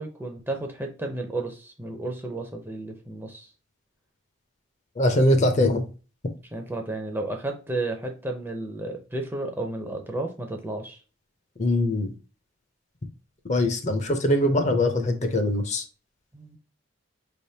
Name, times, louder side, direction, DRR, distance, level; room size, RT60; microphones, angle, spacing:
voice 1, 0.0-3.5 6.5-11.0 16.3-16.6, right 2 dB, 10° right, 0.5 m, -32 dB
voice 2, 5.0-5.9 11.6-12.1 13.5-15.8, left 1 dB, 35° left, 0.5 m, -22 dB
5.1 x 3.4 x 2.7 m
head